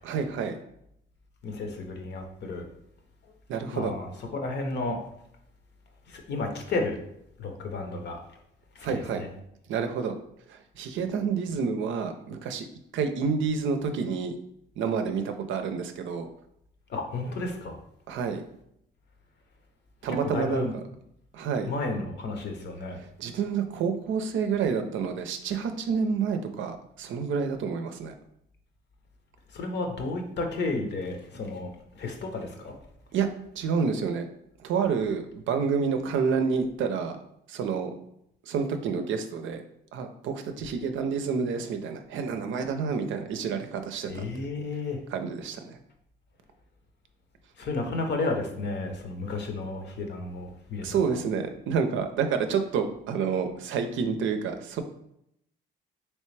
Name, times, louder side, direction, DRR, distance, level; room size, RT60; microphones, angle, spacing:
voice 1, 0.0-0.6 3.5-3.9 8.8-9.2 9.7-10.1 10.5-12.7 12.9-14.3 14.8-16.3 18.1-18.4 20.0-20.7 21.3-21.7 23.2-28.1 33.1-33.3 33.6-34.3 34.6-37.2 37.5-37.9 38.5-39.6 39.9-44.2 45.1-45.8 50.8-54.8, right 6 dB, 75° right, 7 dB, 0.5 m, -29 dB
voice 2, 1.4-2.7 3.7-5.0 6.1-7.0 7.4-8.2 8.8-9.3 16.9-17.8 20.2-20.7 21.7-23.0 29.5-32.7 44.1-45.0 47.6-51.2, left 3 dB, 60° left, 3 dB, 0.8 m, -32 dB
3.3 x 3.0 x 3.2 m, 0.77 s
cardioid pair, 90°, 20 cm